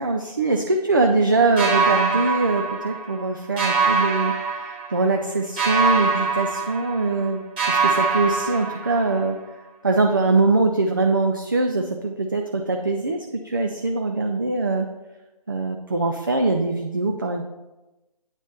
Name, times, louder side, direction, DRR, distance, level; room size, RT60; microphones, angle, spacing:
voice 1, 0.0-4.3 4.9-7.4 7.7-9.4 9.8-14.9 15.5-17.4, right 3 dB, 35° right, 3 dB, 0.4 m, -22 dB
sound 1, 1.6-3.3 3.6-5.2 5.6-7.3 7.6-9.3, right 4 dB, 15° right, 1.4 m, -23 dB
8.8 x 3.0 x 5.3 m, 1.0 s
figure-of-eight pair, 150°, 20 cm